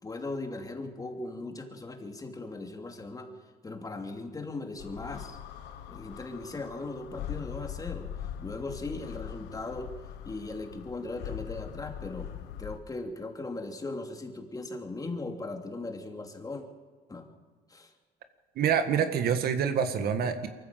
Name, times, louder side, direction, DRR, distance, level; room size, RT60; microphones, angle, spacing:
voice 1, 0.0-3.3 3.6-5.4 5.9-8.1 8.4-9.9 10.2-12.3 12.6-16.6 17.1-17.3 17.7-17.9, left 2 dB, 20° left, 4 dB, 2.8 m, -38 dB
sound 1, 4.8-12.8, left 10 dB, 85° left, 1.5 m, -41 dB
voice 2, 18.5-20.5, right 7 dB, 65° right, 8 dB, 1.8 m, -26 dB
23.5 x 14.5 x 7.6 m, 1.5 s
cardioid pair, 110°, 17 cm